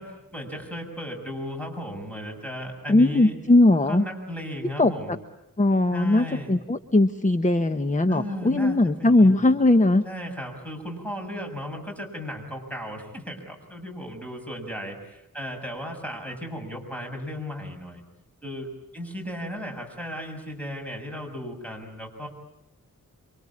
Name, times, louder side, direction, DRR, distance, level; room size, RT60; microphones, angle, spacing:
voice 1, 0.0-3.4 3.9-5.2 5.9-6.6 8.1-9.4 10.1-18.0 18.4-22.3, equal, 5° left, 2 dB, 6.9 m, -35 dB
voice 2, 2.9-4.0 4.8-5.2 5.6-10.0, left 2 dB, 20° left, 9 dB, 0.9 m, -20 dB
28.0 x 24.5 x 8.7 m, 0.86 s
wide cardioid pair, 110°, 34 cm